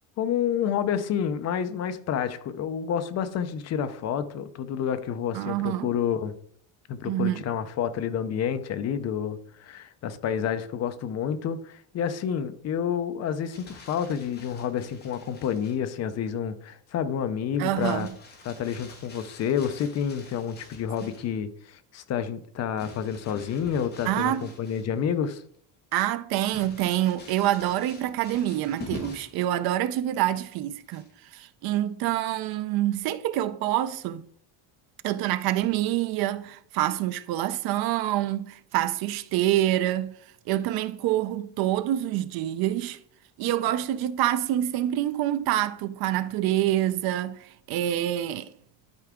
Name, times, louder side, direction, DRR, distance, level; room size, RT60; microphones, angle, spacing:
voice 1, 0.2-6.3 6.9-18.1 18.4-25.4, left 8 dB, 40° left, 0.5 m, -29 dB
voice 2, 5.3-5.9 7.0-7.4 17.6-18.1 24.0-24.5 25.9-31.0 31.3-34.2 35.0-40.2 40.5-43.0 43.4-48.5, right 13 dB, 55° right, 0.6 m, -26 dB
Crumpling crinkling, 13.3-15.9 17.8-21.3 22.8-25.1 25.5-25.6 26.5-29.4 30.9-31.3, left 2 dB, 20° left, 2.0 m, -46 dB
11.5 x 4.7 x 3.6 m
cardioid pair, 175°, 43 cm